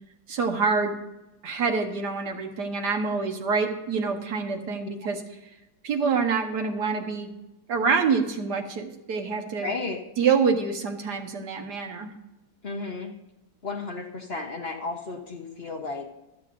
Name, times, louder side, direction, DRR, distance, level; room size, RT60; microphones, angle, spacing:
voice 1, 0.3-1.0 1.4-5.2 5.8-7.3 7.7-9.7 10.2-12.1, right 5 dB, 75° right, 5 dB, 1.8 m, -26 dB
voice 2, 9.6-10.0 12.6-13.1 13.6-16.1, left 3 dB, 40° left, 2 dB, 1.1 m, -33 dB
24.5 x 8.2 x 2.6 m, 1.0 s
omnidirectional pair, 1.8 m